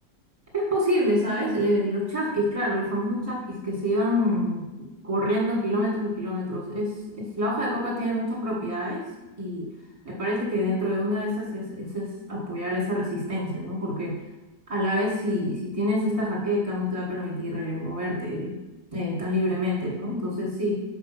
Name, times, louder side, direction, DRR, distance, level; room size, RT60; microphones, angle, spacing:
voice 1, 0.5-9.0 9.4-9.7 10.1-14.2 14.7-18.6 18.9-20.8, equal, 20° right, -3 dB, 1.7 m, -27 dB
5.1 x 4.7 x 6.1 m, 1.1 s
omnidirectional pair, 1.7 m